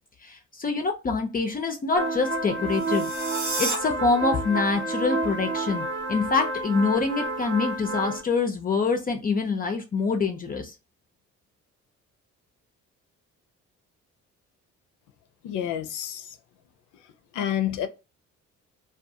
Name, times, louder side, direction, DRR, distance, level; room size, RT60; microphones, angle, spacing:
voice 1, 0.2-3.1 3.6-10.7, left 4 dB, 30° left, 0.4 m, -25 dB
sound 1, 2.0-8.2, right 2 dB, 40° right, 0.5 m, -30 dB
sound 2, 2.7-3.8, right 2 dB, 90° right, 1.0 m, -31 dB
voice 2, 15.4-16.3 17.3-17.9, left 10 dB, 85° left, 0.5 m, -28 dB
2.5 x 2.3 x 2.6 m
cardioid pair, 90°, 30 cm